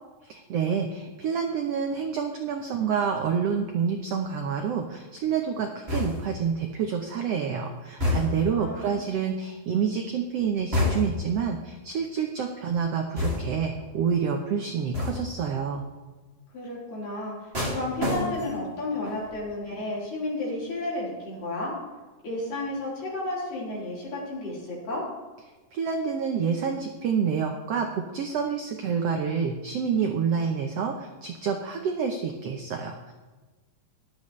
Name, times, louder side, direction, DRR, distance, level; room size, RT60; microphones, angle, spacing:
voice 1, 0.2-15.8 25.7-33.1, right 6 dB, 85° right, 3 dB, 1.4 m, -28 dB
sound 1, 5.9-6.4 8.0-8.6 10.7-11.3 13.2-13.7 14.9-15.4 17.5-18.7 19.0-19.4, left 2 dB, 20° right, 1.8 m, -28 dB
voice 2, 8.5-9.1 16.5-21.7 22.2-25.1, left 2 dB, 70° left, -6 dB, 5.7 m, -32 dB
14.0 x 11.5 x 3.2 m, 1.3 s
omnidirectional pair, 4.0 m